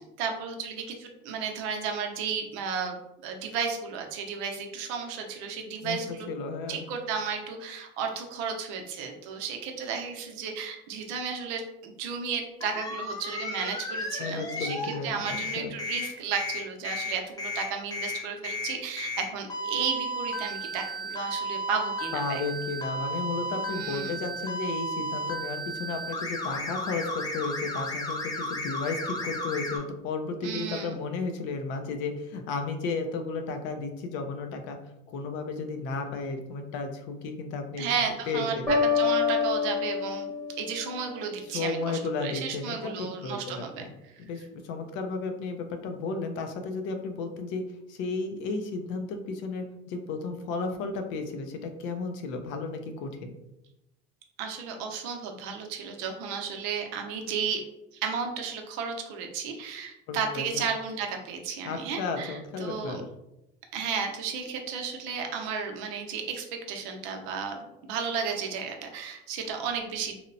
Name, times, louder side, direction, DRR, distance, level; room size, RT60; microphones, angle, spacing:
voice 1, 0.2-6.3 6.7-22.4 23.7-24.2 30.4-31.0 37.8-40.3 40.6-44.1 54.4-57.6 57.9-63.0 63.7-70.2, right 6 dB, 80° right, 3 dB, 0.5 m, -33 dB
voice 2, 5.8-6.8 14.2-15.7 22.1-34.8 35.1-37.9 38.3-38.7 41.5-43.9 44.2-47.6 47.9-53.3 60.1-60.6 61.6-63.1, left 4 dB, 70° left, 6 dB, 0.5 m, -33 dB
sound 1, 12.6-15.0 15.3-29.8, equal, 20° left, 0.5 m, -34 dB
sound 2, 38.7-41.5, left 5 dB, ahead, 0.9 m, -27 dB
2.8 x 2.0 x 2.5 m, 0.89 s
cardioid pair, 115°, 20 cm